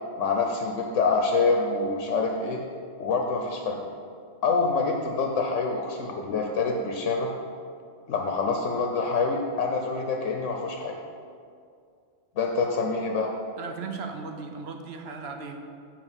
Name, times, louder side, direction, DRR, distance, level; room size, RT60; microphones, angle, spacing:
voice 1, 0.2-2.6 3.0-3.8 4.4-7.3 8.1-11.0 12.4-13.3, left 4 dB, 80° left, 1 dB, 1.0 m, -26 dB
voice 2, 13.6-15.6, right 4 dB, 65° right, 4 dB, 0.9 m, -37 dB
7.6 x 4.4 x 6.1 m, 2.3 s
omnidirectional pair, 1.2 m